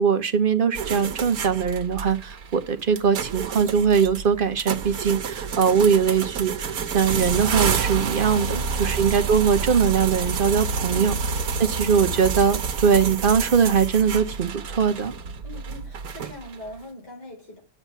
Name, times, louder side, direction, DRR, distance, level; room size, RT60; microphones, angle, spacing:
voice 1, 0.0-11.1 11.6-15.1, right 6 dB, 40° right, 0.9 m, -21 dB
sound 1, 0.7-16.7, right 5 dB, 65° right, 1.5 m, -29 dB
voice 2, 8.4-9.0 10.9-11.7 15.4-17.6, left 1 dB, 85° left, 5.8 m, -42 dB
9.5 x 7.3 x 9.3 m
omnidirectional pair, 1.8 m